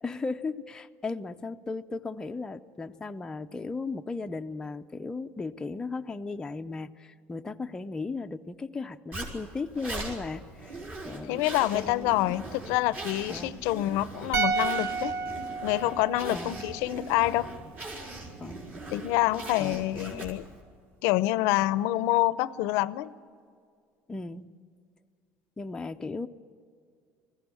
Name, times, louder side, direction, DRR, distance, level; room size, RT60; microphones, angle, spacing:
voice 1, 0.0-10.8 11.0-11.5 11.7-12.4 13.3-13.6 16.3-16.7 18.4-18.6 19.6-20.3 24.1-24.5 25.6-26.3, left 3 dB, 15° left, 6 dB, 0.5 m, -36 dB
Zipper (clothing), 9.1-20.6, right 2 dB, 40° right, 4.5 m, -41 dB
voice 2, 11.2-15.1 15.6-17.5 18.9-20.4 21.0-23.1, left 16 dB, 85° left, 17 dB, 0.6 m, -27 dB
sound 1, 14.3-17.6 17.8-18.0, right 4 dB, 60° right, 1.1 m, -32 dB
20.0 x 15.5 x 9.8 m, 2.2 s
cardioid pair, 135°, 5 cm